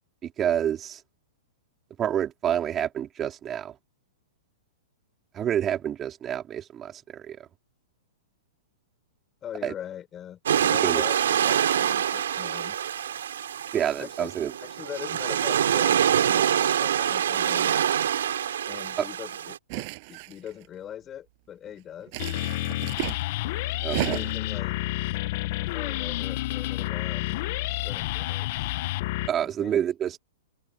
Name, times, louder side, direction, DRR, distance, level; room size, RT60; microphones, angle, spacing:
voice 1, 0.2-1.0 2.0-3.7 5.3-7.4 9.6-9.7 10.6-11.0 13.7-14.5 23.8-24.2 29.3-30.1, right 10 dB, 25° right, 3.1 m, -28 dB
voice 2, 9.4-12.8 14.0-14.3 14.6-17.8 18.7-22.2 24.0-24.8 25.7-28.7 29.4-29.9, left 10 dB, 25° left, 5.2 m, -42 dB
sound 1, 10.5-19.6, right 9 dB, 80° right, 3.9 m, -25 dB
sound 2, 19.7-20.6 22.1-23.2 23.8-24.5, right 29 dB, 45° right, 6.7 m, -33 dB
sound 3, 22.2-29.3, left 17 dB, 50° left, 0.9 m, -30 dB
open air
hypercardioid pair, 130°, 0 cm